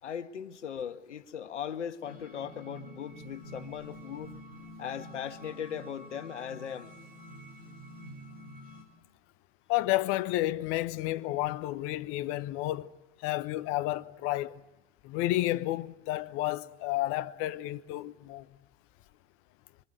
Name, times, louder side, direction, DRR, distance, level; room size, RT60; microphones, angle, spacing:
voice 1, 0.0-4.4 4.8-7.0, left 8 dB, 70° left, 1.7 m, -38 dB
sound 1, 2.0-8.8, equal, 25° right, 6.4 m, -48 dB
voice 2, 9.7-12.9 13.2-14.6 15.0-18.5, left 16 dB, 35° left, 1.1 m, -31 dB
26.0 x 23.5 x 9.3 m
figure-of-eight pair, 100°, 37 cm